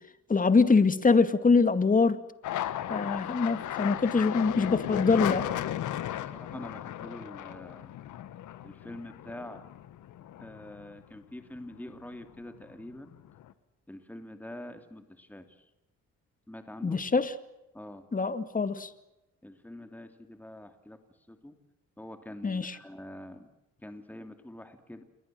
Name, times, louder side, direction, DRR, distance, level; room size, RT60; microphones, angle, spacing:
voice 1, 0.3-2.2 2.9-5.4 16.8-17.4 18.1-18.9 22.4-22.8, left 4 dB, 25° left, 11 dB, 2.2 m, -24 dB
sound 1, 2.4-11.2 11.6-12.3 12.6-13.5, left 12 dB, 75° left, 1.6 m, -35 dB
voice 2, 6.1-7.9 8.6-9.7 10.4-13.2 13.9-15.5 16.5-17.0 17.7-18.0 19.4-21.0 21.3-21.5 22.0-23.5 23.8-25.0, left 1 dB, 5° left, 7 dB, 2.9 m, -45 dB
28.5 x 23.0 x 7.7 m, 0.91 s
cardioid pair, 90°, 30 cm